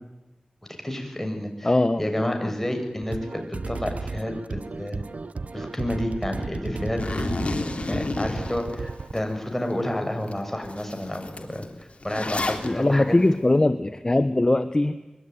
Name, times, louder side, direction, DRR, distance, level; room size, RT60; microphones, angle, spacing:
voice 1, 0.8-1.7 2.0-5.0 5.5-13.1, left 1 dB, 10° left, 4 dB, 7.0 m, -30 dB
voice 2, 1.6-2.5 12.6-15.0, left 2 dB, 30° left, 11 dB, 1.1 m, -21 dB
sound 1, 3.0-9.1, right 4 dB, 70° right, 0.9 m, -34 dB
Zipper (clothing), 7.0-9.2 9.7-9.8 10.3-10.4 10.6-12.7, left 2 dB, 55° left, 3.5 m, -30 dB
25.5 x 22.5 x 9.6 m, 1.1 s
wide cardioid pair, 50°, 2 cm